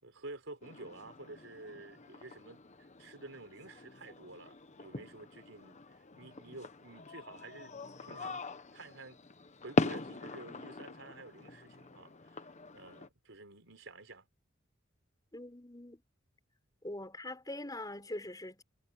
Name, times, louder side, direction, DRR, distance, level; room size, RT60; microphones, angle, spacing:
voice 1, 0.0-5.8 6.2-7.7 8.0-9.2 9.6-12.5 12.7-14.3, right 2 dB, 75° right, 4.8 m, -50 dB
sound 1, 0.6-13.1, left 3 dB, 35° left, 1.1 m, -41 dB
voice 2, 15.3-16.0 16.8-18.6, left 1 dB, 20° left, 6.6 m, -43 dB
head